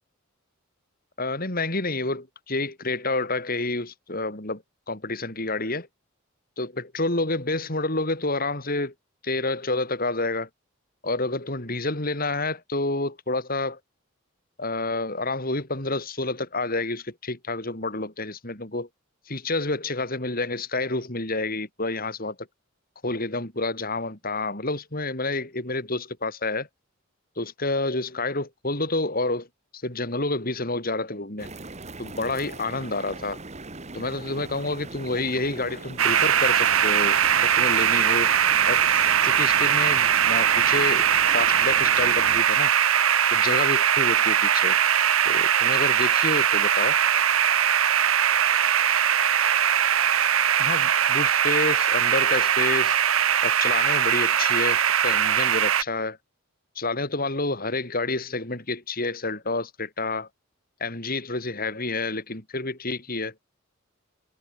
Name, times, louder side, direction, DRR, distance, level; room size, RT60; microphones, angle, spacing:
voice 1, 1.2-4.6 4.9-5.9 6.6-8.9 9.2-10.5 11.0-13.8 14.6-18.9 19.3-22.4 23.0-26.7 27.4-29.5 29.7-31.5 32.0-33.4 33.9-38.3 38.7-41.1 41.3-42.7 43.3-44.8 45.2-47.0 50.6-53.0 53.4-56.2 56.7-60.3 60.8-63.3, left 2 dB, 45° left, 4.8 m, -29 dB
sound 1, 31.4-42.4, right 2 dB, 30° right, 2.0 m, -40 dB
sound 2, 36.0-55.8, right 9 dB, 80° right, 1.4 m, -21 dB
head